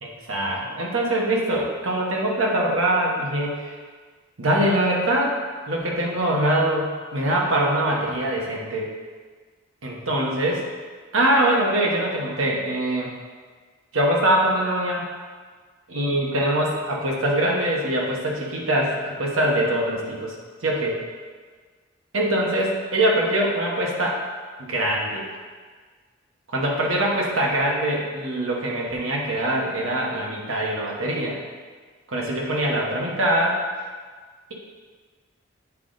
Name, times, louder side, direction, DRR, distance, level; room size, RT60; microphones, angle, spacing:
voice 1, 0.0-3.8 4.4-5.3 5.7-8.9 9.8-10.6 11.1-13.1 13.9-15.0 15.9-20.4 20.6-20.9 22.1-24.2 24.6-25.2 26.5-31.4 32.1-33.6, right 1 dB, 90° right, -2 dB, 1.2 m, -23 dB
8.2 x 3.9 x 3.8 m, 1.5 s
head